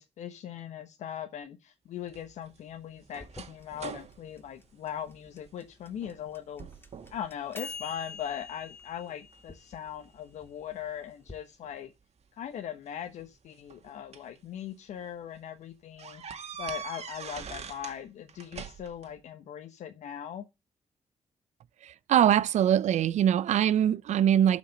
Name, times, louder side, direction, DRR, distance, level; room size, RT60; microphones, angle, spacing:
voice 1, 0.0-6.7 7.1-11.9 12.3-16.2 16.6-20.5, left 9 dB, 90° left, 1.2 m, -40 dB
sound 1, 2.1-5.5 5.9-6.3 6.6-7.3 7.7-8.4 9.0-10.5 11.6-11.7 13.0-14.4 14.9-15.0 15.3-15.4 16.0-18.0 18.3-19.1, right 7 dB, 65° right, 1.9 m, -43 dB
sound 2, 3.2-11.4, left 5 dB, 20° left, 2.1 m, -47 dB
voice 2, 21.8-24.6, right 10 dB, 80° right, 0.6 m, -23 dB
12.0 x 5.3 x 6.5 m
cardioid pair, 60°, 12 cm